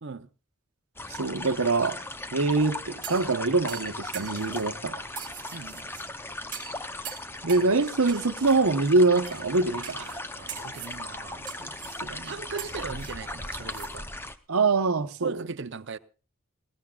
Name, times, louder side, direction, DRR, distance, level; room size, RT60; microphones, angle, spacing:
sound 1, 1.0-14.4, left 2 dB, 10° left, 0.6 m, -38 dB
voice 1, 1.1-2.0 2.3-5.0 7.4-10.2 12.0-12.3 14.5-15.3, right 3 dB, 85° right, 1.0 m, -24 dB
sound 2, 3.0-3.3 3.7-4.7 5.1-6.0 6.5-6.8 7.0-7.7 8.1-8.6 9.2-9.4 9.8-10.2 10.5-11.0 11.5-12.0 12.6-13.9 14.2-14.3, right 11 dB, 35° right, 2.0 m, -42 dB
voice 2, 5.5-5.9 10.3-11.5 12.2-14.1 15.2-16.0, right 5 dB, 55° right, 0.7 m, -38 dB
19.5 x 18.0 x 2.4 m
head